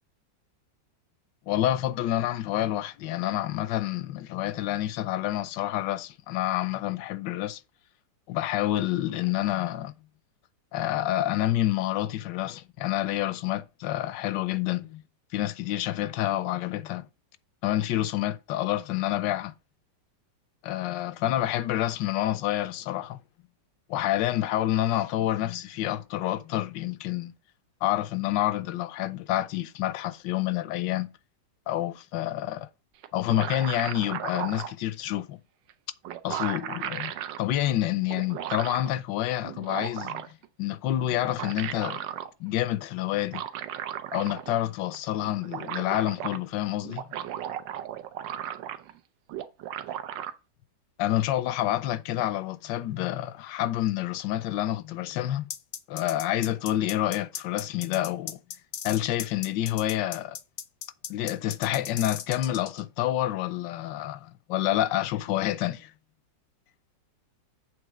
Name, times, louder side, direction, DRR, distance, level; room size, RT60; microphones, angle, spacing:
voice 1, 1.5-7.6 8.3-9.9 10.7-15.0 15.3-17.1 17.6-19.5 20.6-23.2 23.9-27.3 27.8-31.1 31.7-32.7 33.1-35.4 36.2-42.0 42.4-43.4 44.1-47.1 51.0-55.5 55.9-58.4 58.8-60.4 61.1-65.9, left 13 dB, 85° left, 1.3 m, -28 dB
sound 1, 33.0-34.7 35.7-35.8 36.0-37.4 38.1-38.9 39.4-40.5 41.1-42.3 43.2-44.6 44.9-45.0 45.2-46.4 46.8-49.0 49.3-50.3, right 10 dB, 85° right, 1.4 m, -35 dB
sound 2, 55.5-62.8, left 9 dB, 60° left, 0.7 m, -37 dB
8.0 x 3.7 x 6.1 m
omnidirectional pair, 1.9 m